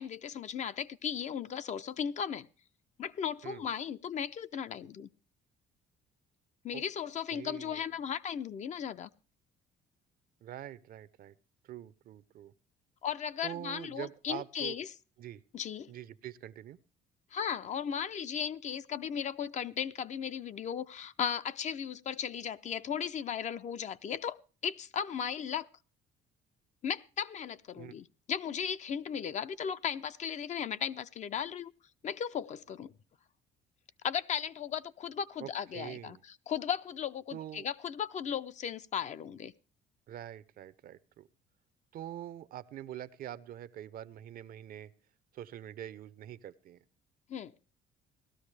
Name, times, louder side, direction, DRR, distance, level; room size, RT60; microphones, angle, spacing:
voice 1, 0.0-2.5 3.0-5.1 6.6-9.1 13.0-14.9 15.5-15.9 17.3-24.4 24.6-25.7 26.8-31.7 32.0-32.9 34.0-36.2 36.5-39.5 47.3-47.5, left 8 dB, 45° left, 13 dB, 0.5 m, -36 dB
voice 2, 7.3-7.9 10.4-11.3 11.7-12.5 13.4-14.8 15.2-15.4 15.9-16.8 27.8-27.9 35.4-36.2 37.3-37.7 40.1-41.3 41.9-44.9 45.3-46.8, right 11 dB, 60° right, 15 dB, 0.6 m, -44 dB
17.5 x 13.0 x 3.3 m, 0.35 s
cardioid pair, 110°, 17 cm